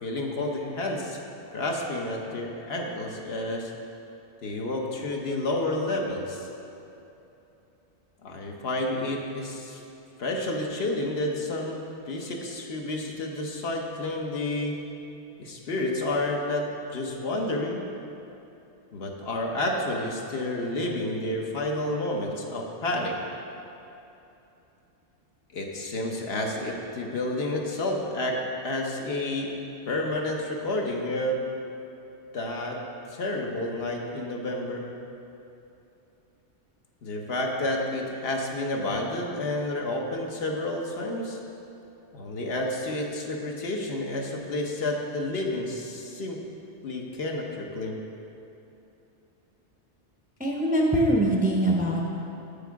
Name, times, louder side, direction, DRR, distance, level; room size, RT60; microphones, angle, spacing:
voice 1, 0.0-1.2 1.5-3.7 4.4-6.5 8.2-9.8 10.2-14.7 15.4-17.9 18.9-23.2 25.5-29.5 29.9-31.4 32.3-32.8 33.1-34.9 37.0-41.4 42.1-46.4 46.8-48.0, left 1 dB, 65° left, 0 dB, 1.0 m, -30 dB
voice 2, 50.4-52.0, right 1 dB, 10° right, -2 dB, 0.6 m, -23 dB
8.0 x 6.8 x 4.6 m, 2.9 s
omnidirectional pair, 1.2 m